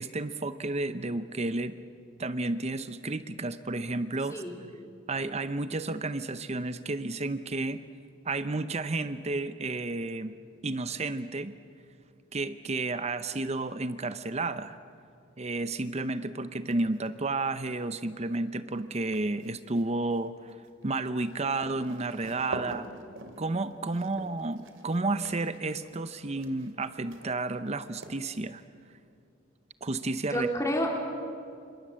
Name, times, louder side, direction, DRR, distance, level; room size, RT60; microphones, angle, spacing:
voice 1, 0.0-1.7 2.2-4.4 5.1-7.8 8.2-10.3 10.6-11.5 12.3-14.8 15.4-20.6 20.8-22.9 23.4-28.6 29.8-30.5, right 2 dB, 35° right, 12 dB, 0.8 m, -31 dB
sound 1, 16.7-17.1 17.5-28.7, right 2 dB, 85° right, 2.7 m, -46 dB
voice 2, 30.3-31.0, equal, 15° left, 1 dB, 3.7 m, -29 dB
29.5 x 26.5 x 7.6 m, 2.5 s
head